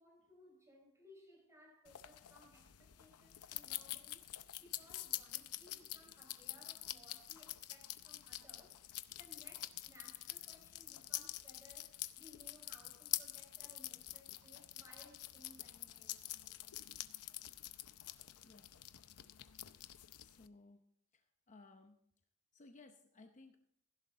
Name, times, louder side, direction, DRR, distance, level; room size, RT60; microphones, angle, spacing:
voice 1, 0.0-8.8 9.1-16.3, left 1 dB, 15° right, 4.7 m, -63 dB
sound 1, 1.9-20.5, left 14 dB, 85° left, 0.7 m, -47 dB
voice 2, 20.1-20.8 21.1-22.0 22.5-23.6, left 3 dB, 35° left, 0.8 m, -60 dB
16.5 x 11.0 x 3.7 m
head